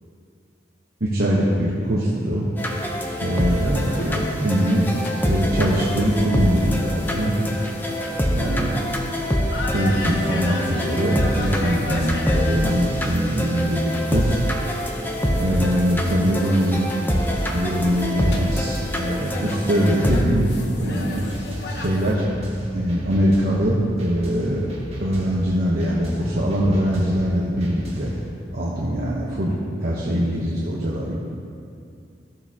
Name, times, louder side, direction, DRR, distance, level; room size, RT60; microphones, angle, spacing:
voice 1, 1.0-2.5 3.2-4.9 5.2-7.3 8.3-8.8 9.7-14.4 15.4-16.8 17.5-20.5 20.8-21.2 21.7-22.2 22.7-24.7 25.0-28.1 28.5-31.2, equal, 60° right, -5 dB, 1.0 m, -22 dB
sound 1, 2.6-20.2, equal, 10° left, 0.7 m, -25 dB
sound 2, 3.3-22.1, left 2 dB, 70° left, 0.9 m, -36 dB
sound 3, 21.1-28.3, equal, 35° right, 1.5 m, -35 dB
14.0 x 6.7 x 2.8 m, 2.4 s
head